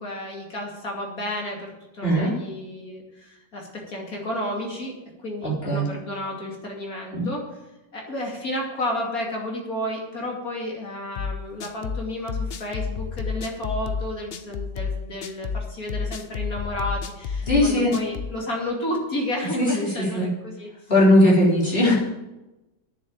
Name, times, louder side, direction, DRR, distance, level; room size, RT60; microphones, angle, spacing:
voice 1, 0.0-7.5 7.9-20.7 21.2-21.3, left 1 dB, 50° left, 0 dB, 3.0 m, -32 dB
voice 2, 2.0-2.3 5.4-5.9 7.1-7.3 17.5-17.9 19.6-20.3 20.9-22.0, left 1 dB, 30° left, -5 dB, 3.6 m, -19 dB
sound 1, 11.2-18.4, left 5 dB, 70° left, 0.5 m, -30 dB
9.9 x 7.3 x 8.7 m, 1.0 s
omnidirectional pair, 1.9 m